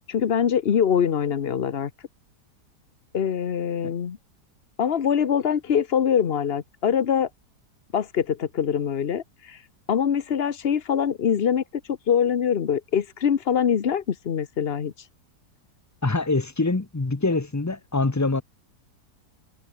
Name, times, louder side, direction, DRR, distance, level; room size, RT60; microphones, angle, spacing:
voice 1, 0.1-1.9 3.1-4.2 4.8-7.3 7.9-9.6 9.9-11.6 11.9-14.9, left 8 dB, 45° left, 1.1 m, -23 dB
voice 2, 16.0-18.4, left 3 dB, 20° left, 0.5 m, -24 dB
omnidirectional pair, 1.7 m